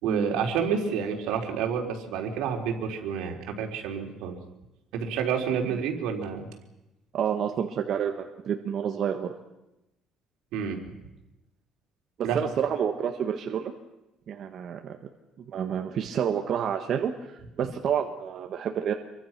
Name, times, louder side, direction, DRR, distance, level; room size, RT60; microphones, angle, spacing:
voice 1, 0.0-4.4 4.9-6.5 10.5-10.8 12.2-12.4, right 7 dB, 80° right, 3 dB, 3.9 m, -29 dB
voice 2, 7.1-9.3 12.2-13.7 14.3-14.8 15.5-18.9, right 8 dB, 45° right, 4 dB, 1.5 m, -29 dB
26.5 x 23.5 x 6.0 m, 0.95 s
cardioid pair, 160°, 0 cm